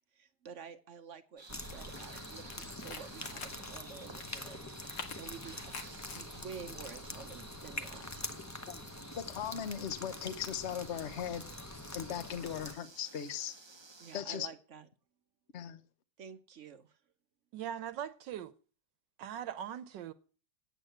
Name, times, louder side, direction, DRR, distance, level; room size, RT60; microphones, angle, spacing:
voice 1, 0.0-8.3 14.0-14.9 16.2-17.0, right 6 dB, 55° right, 0.9 m, -50 dB
sound 1, 1.4-14.2, right 3 dB, 25° right, 0.7 m, -54 dB
sound 2, 1.5-12.7, left 1 dB, 20° left, 0.5 m, -45 dB
sound 3, 2.2-2.3 2.5-3.8 4.2-4.3 4.7-6.6 7.3-8.0, left 5 dB, 85° left, 2.4 m, -47 dB
voice 2, 9.1-11.5 11.9-13.5 14.1-14.5 15.5-15.8, left 9 dB, 45° left, 1.0 m, -38 dB
voice 3, 17.5-18.5 19.2-20.1, right 10 dB, 80° right, 1.4 m, -40 dB
9.0 x 8.3 x 7.8 m
omnidirectional pair, 1.9 m